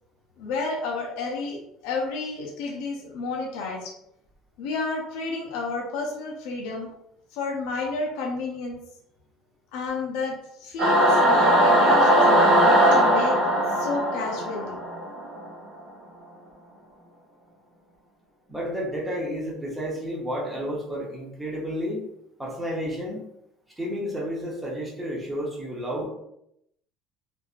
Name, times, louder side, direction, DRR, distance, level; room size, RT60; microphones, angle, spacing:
voice 1, 0.4-3.9 4.6-6.9 7.3-8.8 9.7-13.4 13.7-14.7, left 3 dB, 75° left, -1 dB, 0.6 m, -31 dB
Singing / Musical instrument, 10.8-15.4, right 1 dB, 45° right, 1.1 m, -19 dB
voice 2, 18.5-22.1 22.4-23.3 23.8-26.1, equal, 5° right, -4 dB, 0.8 m, -31 dB
3.1 x 2.5 x 2.4 m, 0.76 s
cardioid pair, 165°, 0 cm